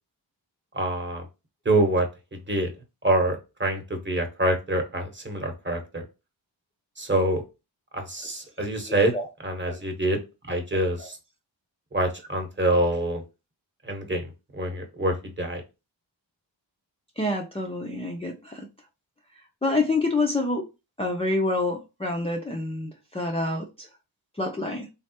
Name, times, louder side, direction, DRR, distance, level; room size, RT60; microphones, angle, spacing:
voice 1, 0.7-1.2 1.6-2.7 3.0-6.0 7.0-7.4 7.9-9.1 9.4-10.2 10.5-11.2 11.9-13.2 13.8-15.6, right 1 dB, 25° right, 1.0 m, -26 dB
voice 2, 8.9-9.3 9.7-9.8 10.7-11.1 17.2-18.7 19.6-20.6 21.0-23.9 24.4-24.9, left 2 dB, 15° left, 0.5 m, -27 dB
3.3 x 2.0 x 2.8 m
cardioid pair, 50°, 46 cm